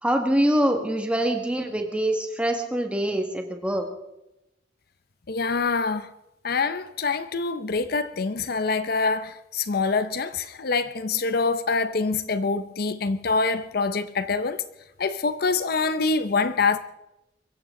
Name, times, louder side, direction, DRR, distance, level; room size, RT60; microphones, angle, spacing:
voice 1, 0.0-3.9, right 1 dB, 5° right, 1.7 m, -24 dB
voice 2, 5.3-6.1 6.4-14.6 15.0-16.8, left 4 dB, 55° left, 0.7 m, -25 dB
22.5 x 15.0 x 3.8 m
head